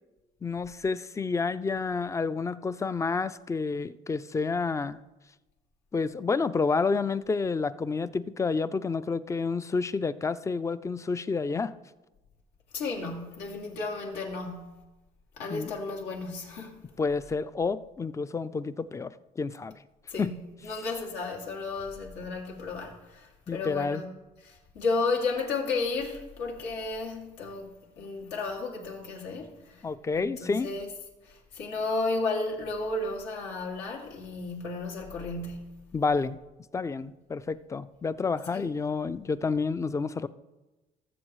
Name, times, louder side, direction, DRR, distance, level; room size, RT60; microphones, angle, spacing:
voice 1, 0.4-5.0 5.9-11.7 15.5-15.7 17.0-19.7 20.2-20.3 23.5-24.0 29.8-30.7 35.9-36.4 36.7-40.3, left 4 dB, 20° left, 0.4 m, -29 dB
voice 2, 12.7-14.8 15.4-16.8 20.1-20.4 20.6-24.1 24.4-27.7 28.0-29.8 30.2-30.9 31.3-35.8 38.5-38.7, left 3 dB, 90° left, 2.4 m, -33 dB
19.5 x 7.2 x 3.1 m
cardioid pair, 110°, 17 cm